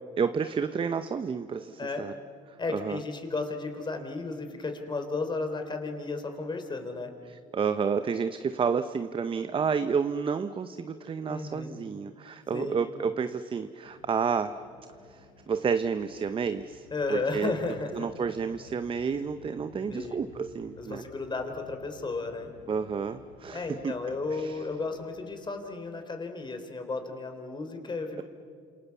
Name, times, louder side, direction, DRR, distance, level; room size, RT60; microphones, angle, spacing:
voice 1, 0.2-2.1 2.5-3.0 7.3-14.6 15.1-17.5 17.9-21.1 22.7-23.9 24.3-24.6, right 6 dB, 30° right, 10 dB, 0.9 m, -30 dB
voice 2, 2.6-7.1 11.3-11.8 12.5-12.8 16.9-18.1 19.9-20.2 20.8-22.5 23.5-28.2, left 3 dB, 30° left, 6 dB, 3.8 m, -34 dB
Airship Drone, 13.8-25.5, left 5 dB, 90° left, 5.2 m, -55 dB
29.5 x 27.0 x 7.2 m, 2.4 s
supercardioid pair, 90°, 17 cm